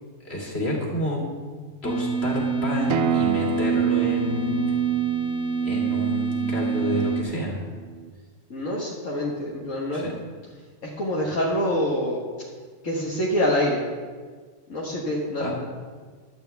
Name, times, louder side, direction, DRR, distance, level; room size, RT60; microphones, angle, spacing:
voice 1, 0.2-1.2 1.8-4.7 5.6-7.7 9.9-10.1 15.4-15.5, left 1 dB, 55° left, -2 dB, 2.8 m, -29 dB
sound 1, 1.8-7.2, right 7 dB, 5° right, 1.8 m, -26 dB
Acoustic guitar, 2.9-8.1, right 7 dB, 65° right, 0.8 m, -29 dB
voice 2, 8.5-10.0 10.8-12.5 12.8-13.8 14.7-15.5, left 1 dB, 75° left, -4 dB, 1.9 m, -26 dB
15.0 x 11.5 x 3.5 m, 1.5 s
omnidirectional pair, 1.3 m